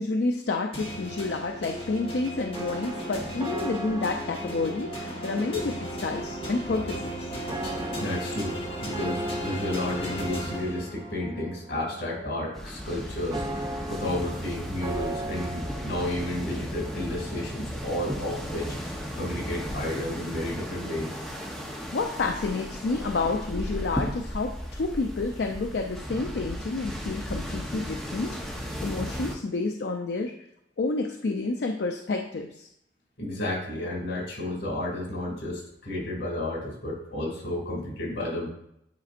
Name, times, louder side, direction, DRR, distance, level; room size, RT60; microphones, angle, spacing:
voice 1, 0.0-7.1 21.7-30.3 30.8-32.7, left 3 dB, 70° left, 3 dB, 0.5 m, -29 dB
sound 1, 0.7-11.3, equal, 30° left, 1.1 m, -36 dB
sound 2, 2.5-17.5, right 1 dB, 20° right, 0.4 m, -39 dB
voice 2, 8.0-21.1 33.2-38.5, left 1 dB, 90° left, -1 dB, 2.3 m, -32 dB
sound 3, 12.5-29.3, equal, ahead, 0.8 m, -35 dB
9.5 x 4.2 x 2.5 m, 0.76 s
head